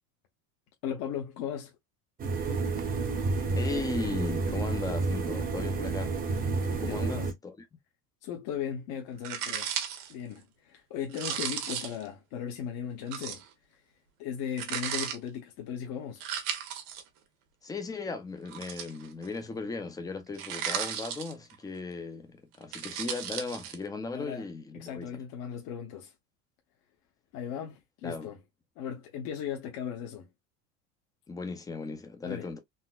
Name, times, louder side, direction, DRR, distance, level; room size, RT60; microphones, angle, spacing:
voice 1, 0.8-1.7 6.9-7.3 8.2-9.7 10.1-13.4 13.7-13.8 14.2-16.2 24.1-24.4 24.7-26.1 27.3-28.4 28.8-30.3 32.2-32.5, left 8 dB, 50° left, 0.9 m, -37 dB
sound 1, 2.2-7.3, right 4 dB, 20° right, 0.7 m, -30 dB
voice 2, 3.5-6.2 6.7-7.6 17.6-25.1 28.0-28.3 31.3-32.6, left 4 dB, 10° left, 0.4 m, -37 dB
sound 2, 9.2-10.1 11.1-12.1 13.1-13.5 14.6-15.2 16.2-17.0 18.5-19.3 20.3-21.5 22.5-23.8, right 9 dB, 65° right, 1.1 m, -35 dB
4.0 x 2.0 x 2.3 m
supercardioid pair, 130°, 46 cm